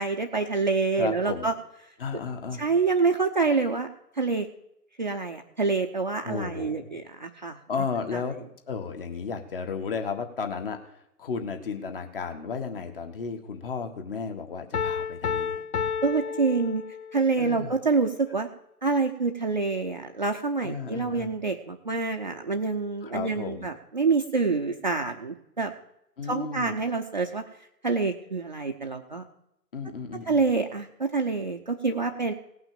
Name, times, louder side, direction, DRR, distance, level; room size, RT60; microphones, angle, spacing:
voice 1, 0.0-1.5 2.6-3.9 4.2-4.5 5.0-7.9 16.0-16.8 17.1-18.5 18.8-25.7 26.3-27.4 27.8-29.3 30.3-32.3, right 4 dB, 30° right, 3 dB, 0.7 m, -26 dB
voice 2, 1.0-1.5 2.0-2.6 6.2-6.9 7.7-8.3 8.7-10.8 11.2-15.6 17.4-17.7 20.6-21.3 23.0-23.7 26.2-26.8 29.7-30.4, left 5 dB, 35° left, 5 dB, 1.8 m, -33 dB
Piano, 14.7-17.3, left 6 dB, 65° left, 0.6 m, -31 dB
17.5 x 6.0 x 8.9 m, 0.77 s
figure-of-eight pair, 145°, 50 cm